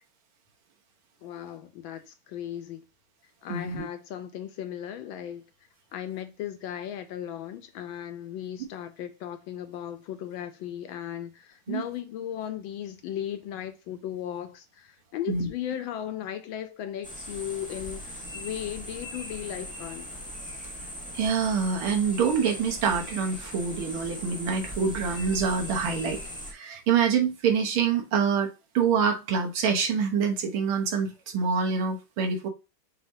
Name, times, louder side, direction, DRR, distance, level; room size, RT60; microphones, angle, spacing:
voice 1, 1.2-2.8 3.4-5.5 5.9-20.1, left 10 dB, 75° left, 1.3 m, -36 dB
voice 2, 3.5-3.8 11.7-11.8 15.3-15.5 21.1-26.2 26.5-28.5 28.7-32.5, right 6 dB, 80° right, 1.9 m, -26 dB
sound 1, 17.0-26.5, equal, 5° left, 0.7 m, -39 dB
6.8 x 2.9 x 2.7 m
omnidirectional pair, 2.4 m